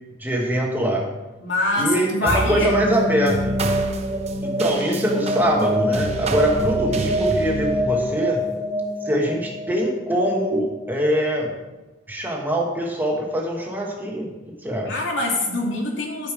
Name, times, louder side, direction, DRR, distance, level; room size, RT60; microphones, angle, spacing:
voice 1, 0.2-1.1 1.8-3.6 4.4-8.4 9.0-11.5 12.1-14.3 14.6-14.9, equal, 10° right, 0 dB, 1.2 m, -23 dB
voice 2, 1.4-2.7 14.8-16.3, left 2 dB, 80° left, -2 dB, 2.6 m, -24 dB
sound 1, 2.3-11.0, right 1 dB, 35° right, 0.8 m, -25 dB
12.5 x 5.3 x 4.8 m, 1.1 s
head